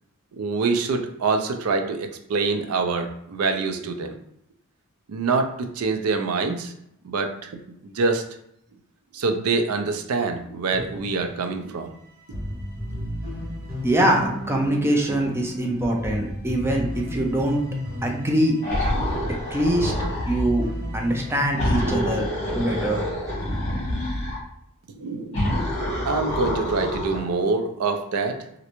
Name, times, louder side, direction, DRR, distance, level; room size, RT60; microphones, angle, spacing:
voice 1, 0.4-4.1 5.1-6.7 7.0-7.5 7.8-8.2 9.1-11.9 25.0-25.4 26.0-28.4, right 4 dB, 75° right, 6 dB, 0.4 m, -25 dB
sound 1, 10.7-11.7 12.0-12.1 12.2-24.0, left 1 dB, 45° right, 1.2 m, -34 dB
voice 2, 13.8-17.6 18.0-18.5 19.5-19.9 20.3-20.7 20.9-22.3 22.5-23.1, right 1 dB, 10° right, 0 dB, 0.5 m, -23 dB
sound 2, 18.6-20.5 21.6-24.4 25.3-27.3, left 1 dB, 30° left, 1.3 m, -27 dB
3.1 x 2.5 x 2.9 m, 0.75 s
head